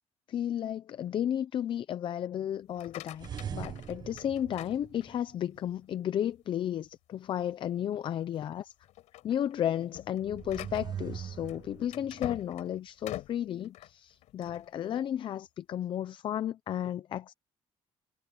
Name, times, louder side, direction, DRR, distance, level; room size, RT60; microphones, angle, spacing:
voice 1, 0.3-8.7 9.2-17.3, left 10 dB, 45° left, 0.6 m, -33 dB
sound 1, 2.6-5.4 5.9-6.4 6.8-6.9 7.4-7.5 8.2-8.5 8.8-14.7, left 15 dB, 85° left, 4.5 m, -45 dB
sound 2, 3.1-5.6 10.1-12.4, right 8 dB, 35° right, 1.0 m, -41 dB
cardioid pair, 155°, 12 cm